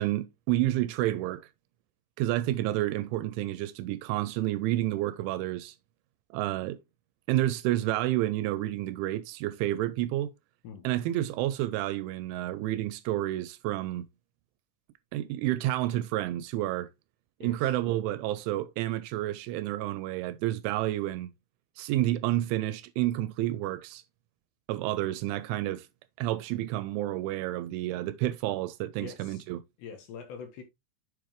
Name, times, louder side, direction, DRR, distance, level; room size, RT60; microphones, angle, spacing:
voice 1, 0.0-1.5 2.2-5.8 6.3-6.8 7.3-10.3 10.8-14.1 15.1-16.9 17.4-21.3 21.8-24.0 24.7-25.9 26.2-29.6, right 15 dB, 85° right, 2.8 m, -30 dB
voice 2, 17.4-17.7 29.0-29.4 29.8-30.6, left 6 dB, 70° left, 3.1 m, -44 dB
7.4 x 6.9 x 3.1 m
omnidirectional pair, 5.7 m